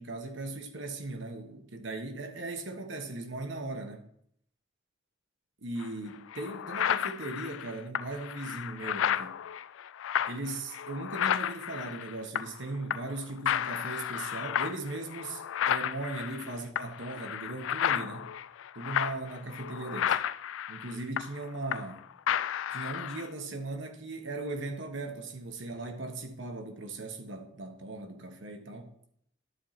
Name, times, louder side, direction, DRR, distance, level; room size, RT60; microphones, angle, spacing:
voice 1, 0.0-4.0 5.6-9.3 10.3-18.3 18.7-20.2 20.7-22.0 22.7-28.9, right 2 dB, 75° right, 1.3 m, -38 dB
sound 1, 5.8-5.9 6.3-12.6 12.9-13.2 13.5-22.0 22.3-23.3, left 9 dB, 85° left, 0.3 m, -32 dB
11.0 x 4.7 x 5.8 m
head